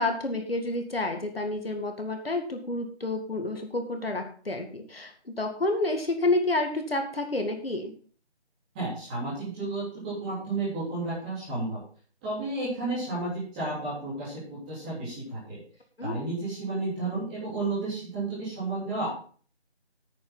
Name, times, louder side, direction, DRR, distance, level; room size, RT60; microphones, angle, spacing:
voice 1, 0.0-7.9 16.0-16.1, left 2 dB, 60° left, 4 dB, 2.2 m, -29 dB
voice 2, 8.7-11.8 12.2-15.6 16.0-19.1, right 2 dB, 5° right, -10 dB, 3.7 m, -32 dB
11.5 x 8.8 x 4.0 m, 0.43 s
figure-of-eight pair, 170°, 34 cm